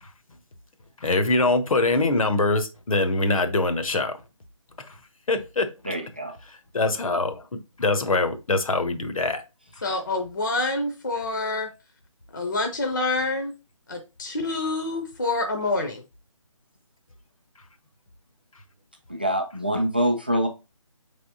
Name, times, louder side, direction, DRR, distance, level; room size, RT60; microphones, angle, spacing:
voice 1, 1.0-4.2 4.8-5.0 5.3-5.9 6.5-9.4, left 2 dB, 90° left, 0.9 m, -24 dB
voice 2, 5.9-6.3 19.1-20.5, equal, 20° right, 0.4 m, -25 dB
voice 3, 9.8-11.7 12.3-13.5 13.9-16.0, left 2 dB, 35° left, 0.5 m, -27 dB
5.3 x 3.4 x 2.7 m
hypercardioid pair, 175°, 17 cm